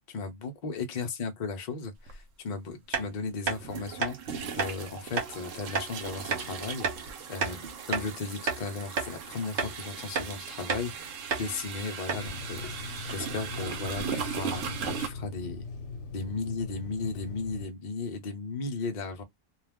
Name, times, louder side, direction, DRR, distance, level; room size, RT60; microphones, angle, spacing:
voice 1, 0.1-7.6 7.9-15.6 16.1-19.2, left 4 dB, 50° left, 0.6 m, -36 dB
sound 1, 2.1-2.2 3.6-15.1, right 6 dB, 85° right, 1.1 m, -38 dB
sound 2, 2.9-3.1 3.5-3.6 4.0-4.1 4.6-4.7 5.2-5.3 5.7-5.9 6.3-6.5 6.8-7.0 7.4-8.1 8.5-8.6 9.0-9.1 9.6-9.8 10.1-10.3 10.7-10.9 11.3-11.5 11.7-11.8 12.1-12.3, right 5 dB, 50° right, 0.8 m, -30 dB
Water tap faucet / Sink (filling or washing), 12.1-17.7, left 4 dB, 65° left, 0.9 m, -40 dB
2.3 x 2.3 x 3.4 m
omnidirectional pair, 1.3 m